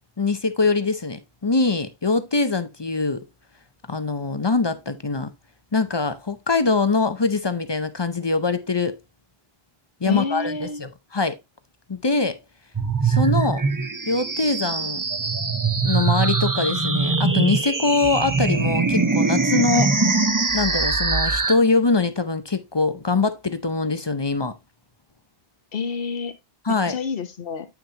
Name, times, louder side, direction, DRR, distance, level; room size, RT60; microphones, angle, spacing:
voice 1, 0.2-3.2 3.9-5.3 5.7-9.0 10.0-11.4 11.9-12.4 13.0-13.6 14.1-15.0 15.8-19.9 20.5-24.5 26.6-27.0, left 3 dB, 30° left, 0.6 m, -23 dB
voice 2, 10.1-10.8 19.7-19.9 25.7-26.3 26.7-27.7, left 5 dB, 65° left, 1.2 m, -28 dB
sound 1, 12.7-21.5, right 4 dB, 20° right, 0.7 m, -22 dB
8.6 x 5.9 x 2.8 m
omnidirectional pair, 1.0 m